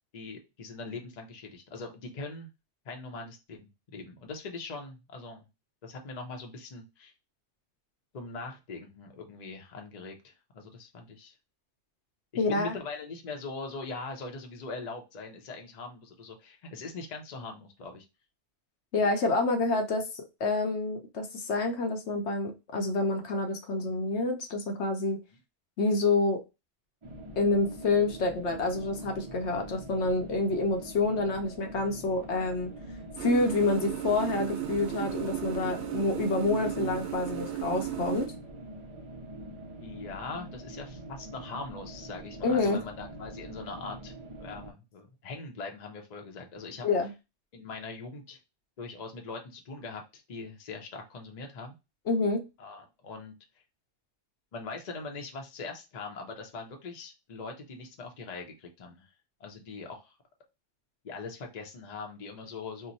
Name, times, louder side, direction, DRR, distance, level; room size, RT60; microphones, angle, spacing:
voice 1, 0.1-2.5 2.8-3.6 3.9-5.5 5.8-7.1 8.1-11.3 12.3-18.1 39.8-44.1 44.4-46.9 47.5-48.4 48.8-51.7 52.6-53.3 54.5-59.1 59.4-60.2 61.0-62.9, left 3 dB, 45° left, 0.7 m, -41 dB
voice 2, 12.4-12.8 18.9-20.1 20.4-25.2 25.8-26.4 27.4-32.7 33.2-38.3 42.4-42.8 46.8-47.1 52.1-52.4, left 3 dB, 70° left, 0.9 m, -28 dB
sound 1, 27.0-44.7, right 1 dB, 40° right, 0.4 m, -44 dB
sound 2, 33.2-38.3, right 11 dB, 75° right, 0.9 m, -35 dB
2.9 x 2.1 x 3.9 m
omnidirectional pair, 1.2 m